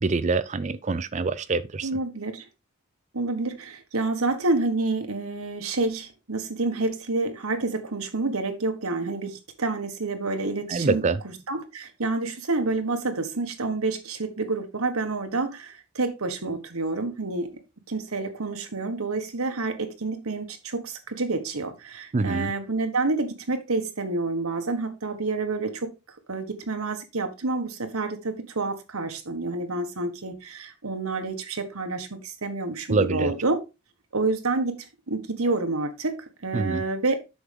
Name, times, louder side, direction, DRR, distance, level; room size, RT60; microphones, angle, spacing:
voice 1, 0.0-1.9 10.7-11.2 22.1-22.5 32.9-33.3 36.5-36.8, right 3 dB, 35° right, 0.4 m, -25 dB
voice 2, 1.8-2.4 3.1-17.5 17.9-25.9 26.3-33.6 34.1-37.2, right 3 dB, 85° right, 1.4 m, -28 dB
8.0 x 6.3 x 3.5 m
head